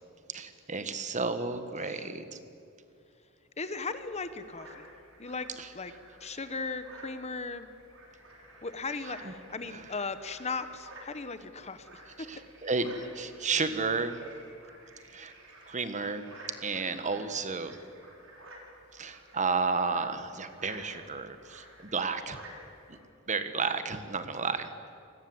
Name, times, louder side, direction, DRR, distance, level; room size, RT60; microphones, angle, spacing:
voice 1, 0.3-2.4 5.6-5.7 9.2-9.3 9.7-9.8 12.3-14.2 15.1-15.3 15.7-16.2 16.6-17.8 18.9-22.4 23.3-24.7, right 4 dB, 35° right, 10 dB, 1.5 m, -32 dB
voice 2, 3.6-4.8 5.2-5.5 5.7-5.9 6.2-7.7 8.6-12.3, left 4 dB, 30° left, 11 dB, 1.1 m, -37 dB
sound 1, 3.7-23.0, right 1 dB, 65° right, 5.8 m, -52 dB
29.0 x 20.0 x 8.1 m, 2.5 s
head